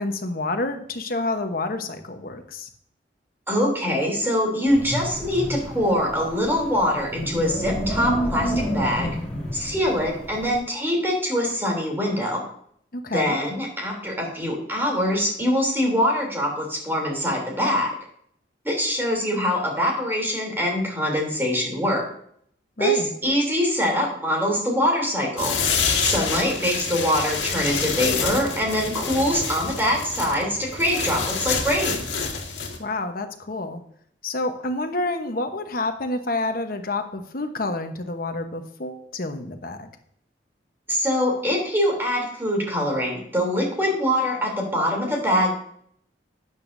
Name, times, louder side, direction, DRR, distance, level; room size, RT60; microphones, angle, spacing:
voice 1, 0.0-2.7 12.9-13.4 22.8-23.1 32.8-33.8 34.2-39.9, left 2 dB, 55° left, 6 dB, 1.1 m, -28 dB
voice 2, 3.5-9.1 9.5-12.4 13.1-17.9 18.6-22.1 22.8-25.6 26.0-32.0 40.9-45.5, equal, 15° right, 0 dB, 3.2 m, -23 dB
Wind, 4.7-10.6, equal, 5° left, 2.6 m, -29 dB
sound 1, 25.4-32.8, left 5 dB, 85° left, 1.9 m, -27 dB
12.0 x 9.1 x 2.7 m, 0.65 s
head